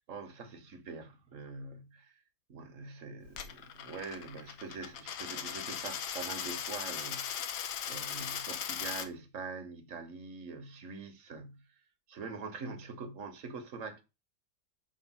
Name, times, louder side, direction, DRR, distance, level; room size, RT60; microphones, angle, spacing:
voice 1, 0.1-2.2 2.5-11.7 12.1-14.0, right 4 dB, 55° right, 1.3 m, -44 dB
Coin (dropping), 3.3-9.1, left 9 dB, 85° left, 1.4 m, -38 dB
6.3 x 4.7 x 6.0 m
omnidirectional pair, 1.7 m